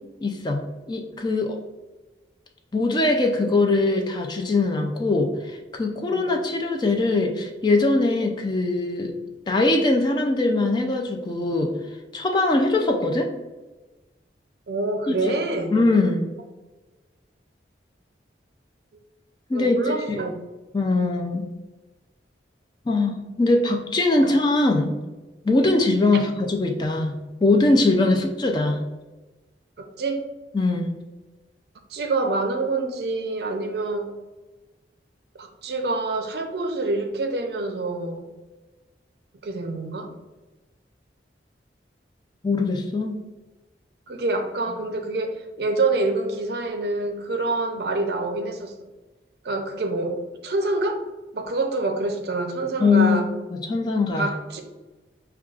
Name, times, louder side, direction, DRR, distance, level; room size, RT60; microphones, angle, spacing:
voice 1, 0.2-1.6 2.7-9.1 9.5-11.8 12.1-13.3 15.1-15.3 15.7-16.2 19.5-19.8 20.1-20.2 20.7-21.5 22.9-24.9 25.4-28.8 30.5-30.9 42.4-43.2 52.8-53.2 53.5-54.3, left 2 dB, 25° left, 3 dB, 0.3 m, -22 dB
voice 2, 14.7-15.7 19.5-20.4 29.8-30.2 31.9-34.1 35.4-38.3 39.4-40.1 44.1-48.7 49.4-51.0 51.3-53.3 54.2-54.6, right 2 dB, 60° right, 4 dB, 0.5 m, -26 dB
6.0 x 2.3 x 2.3 m, 1.2 s
head